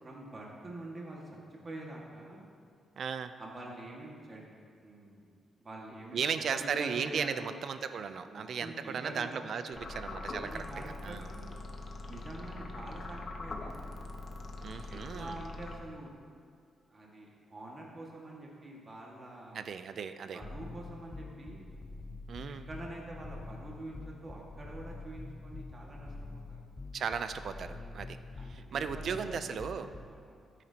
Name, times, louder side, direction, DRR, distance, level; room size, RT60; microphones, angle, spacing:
voice 1, 0.0-1.2 1.6-2.4 3.4-4.4 4.8-5.3 5.6-7.6 8.3-11.6 12.1-14.0 14.9-16.1 16.9-19.6 20.3-21.7 22.7-26.6 27.7-28.1 28.4-29.2 29.4-30.4, right 1 dB, 30° right, -3 dB, 1.8 m, -46 dB
voice 2, 3.0-3.3 6.1-11.3 14.6-15.4 19.5-20.4 22.3-22.7 26.9-28.2 28.5-29.9, right 6 dB, 55° right, 10 dB, 0.5 m, -36 dB
sound 1, 9.7-16.2, left 2 dB, 45° left, 0.9 m, -43 dB
sound 2, 20.4-30.1, left 3 dB, 20° left, 0.5 m, -46 dB
14.0 x 9.1 x 2.9 m, 2.2 s
cardioid pair, 135°, 0 cm